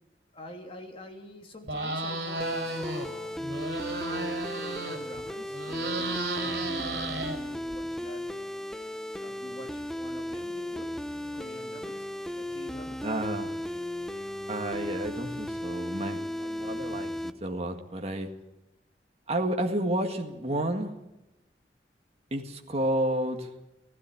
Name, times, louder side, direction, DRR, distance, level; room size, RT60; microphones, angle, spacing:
voice 1, 0.3-3.7 4.1-8.3 9.2-10.9 11.3-12.1 12.4-13.0, left 1 dB, 30° left, 2 dB, 3.2 m, -46 dB
sound 1, 1.6-3.1 3.4-5.2 5.5-7.8, right 2 dB, 70° right, 4.4 m, -33 dB
sound 2, 2.4-17.3, left 1 dB, 5° left, 0.9 m, -35 dB
voice 2, 13.0-13.5 14.5-18.3 19.3-20.9 22.3-23.5, right 1 dB, 35° right, 3 dB, 1.9 m, -31 dB
16.5 x 16.0 x 10.0 m, 0.95 s
head